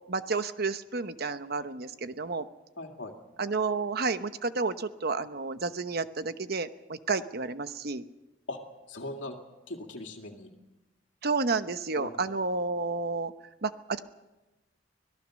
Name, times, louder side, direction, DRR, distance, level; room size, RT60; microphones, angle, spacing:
voice 1, 0.1-2.5 3.4-8.0 11.2-13.3 13.6-14.0, right 4 dB, 55° right, 11 dB, 1.0 m, -31 dB
voice 2, 2.8-3.1 8.5-8.6 8.9-9.4 9.7-10.5 12.0-12.3, left 2 dB, 90° left, 1 dB, 2.4 m, -39 dB
25.0 x 18.0 x 6.4 m, 1.0 s
head